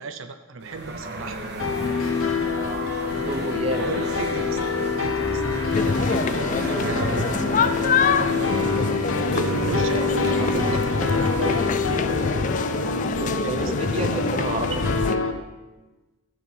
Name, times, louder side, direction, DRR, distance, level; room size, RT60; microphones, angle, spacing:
voice 1, 0.0-1.5 3.8-4.6 5.0-6.6 6.8-7.6 9.3-10.8 13.4-14.9, right 4 dB, 70° right, 7 dB, 0.7 m, -35 dB
sound 1, 0.6-12.2, right 2 dB, 50° right, 1.2 m, -33 dB
sound 2, 1.6-15.3, left 4 dB, 75° left, 0.9 m, -26 dB
voice 2, 2.4-3.9 7.8-8.2 9.2-9.6 9.9-10.8 11.4-12.5 13.1-15.1, right 2 dB, 30° right, 4 dB, 0.8 m, -33 dB
sound 3, 5.7-15.2, left 5 dB, 35° left, 0.3 m, -26 dB
13.0 x 6.0 x 5.4 m, 1.2 s
head